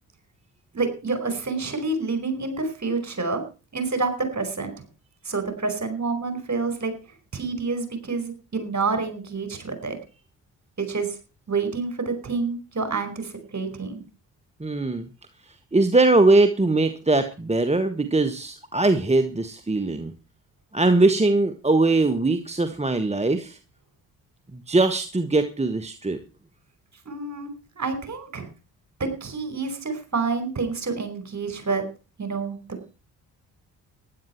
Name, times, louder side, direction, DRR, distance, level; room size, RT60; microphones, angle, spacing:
voice 1, 0.7-3.4 3.7-4.8 5.2-6.9 7.3-10.0 10.8-11.2 11.5-14.0 27.0-28.5 29.0-31.8 32.2-32.9, right 4 dB, 35° right, 8 dB, 5.0 m, -28 dB
voice 2, 14.6-15.1 15.7-20.1 20.7-23.6 24.7-26.2, right 2 dB, 15° right, 9 dB, 1.5 m, -21 dB
15.5 x 11.0 x 4.6 m, 0.34 s
figure-of-eight pair, 40°, 47 cm